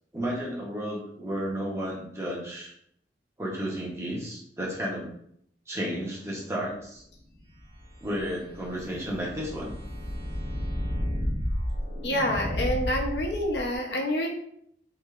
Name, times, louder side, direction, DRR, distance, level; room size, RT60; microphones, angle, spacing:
voice 1, 0.1-2.7 3.4-5.1 5.7-7.0 8.0-9.7, equal, 15° right, -3 dB, 0.6 m, -32 dB
sound 1, 7.4-13.8, equal, 45° right, 1.2 m, -32 dB
voice 2, 12.0-14.3, left 1 dB, 70° left, 1 dB, 0.5 m, -27 dB
3.1 x 2.8 x 2.3 m, 0.70 s
head